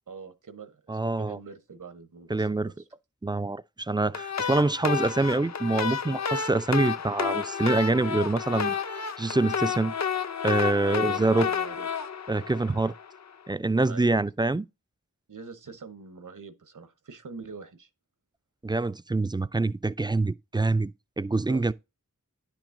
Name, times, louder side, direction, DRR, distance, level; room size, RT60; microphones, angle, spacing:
voice 1, 0.1-2.7 10.9-11.9 13.8-14.1 15.3-17.9 21.5-21.7, right 5 dB, 75° right, 1.0 m, -44 dB
voice 2, 0.9-1.4 2.3-2.7 3.2-8.8 9.2-9.9 10.4-11.5 12.3-12.9 13.5-14.7 18.6-20.9 21.2-21.7, right 2 dB, 15° right, 0.3 m, -25 dB
sound 1, 4.1-13.2, left 6 dB, 60° left, 0.6 m, -31 dB
10.5 x 6.1 x 2.5 m
wide cardioid pair, 50°, 31 cm